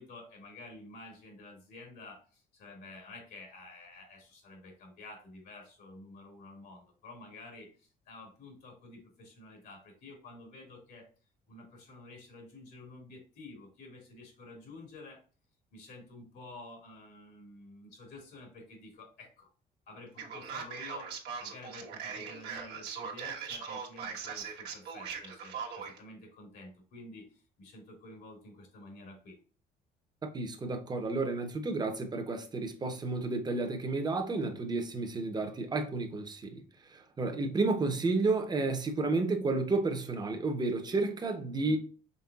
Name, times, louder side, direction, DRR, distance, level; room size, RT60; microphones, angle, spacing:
voice 1, 0.0-11.1 11.5-15.2 15.7-19.5 19.9-21.1 21.4-29.4 41.6-41.8, left 2 dB, 70° left, 2.3 m, -50 dB
Male speech man speaking, 20.2-26.0, right 6 dB, 80° right, 1.3 m, -40 dB
voice 2, 30.3-36.6 36.9-41.8, right 3 dB, 25° right, 1.0 m, -31 dB
5.5 x 3.5 x 2.4 m
cardioid pair, 110°, 17 cm